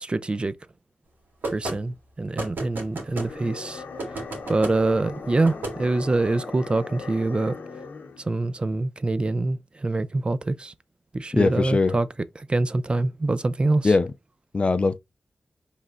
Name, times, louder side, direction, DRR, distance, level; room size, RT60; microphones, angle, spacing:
voice 1, 0.0-0.5 1.5-3.8 4.5-7.5 8.2-10.7 11.1-12.1 12.4-13.9, right 2 dB, 30° right, 0.4 m, -25 dB
sound 1, 1.4-1.8 2.4-3.3 4.0-4.7 5.4-5.8, right 2 dB, 85° right, 1.9 m, -32 dB
sound 2, 3.0-8.3, left 4 dB, 80° left, 0.7 m, -39 dB
voice 2, 11.3-12.0 13.8-14.1 14.5-15.0, left 3 dB, 35° left, 0.4 m, -21 dB
5.1 x 3.3 x 2.4 m
wide cardioid pair, 90°, 3 cm